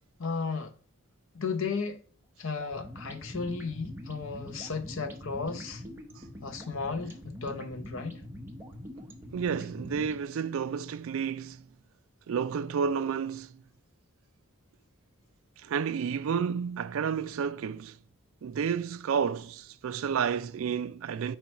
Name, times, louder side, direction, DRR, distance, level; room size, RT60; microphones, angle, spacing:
voice 1, 0.2-0.7 1.3-2.0 2.4-5.8 6.4-8.2, left 4 dB, 60° left, 0.7 m, -34 dB
sound 1, 2.6-10.2, left 1 dB, 10° right, 0.7 m, -44 dB
voice 2, 9.3-11.7 12.3-13.6 15.6-18.0 18.4-21.4, right 7 dB, 65° right, 0.3 m, -31 dB
4.6 x 4.5 x 5.2 m
head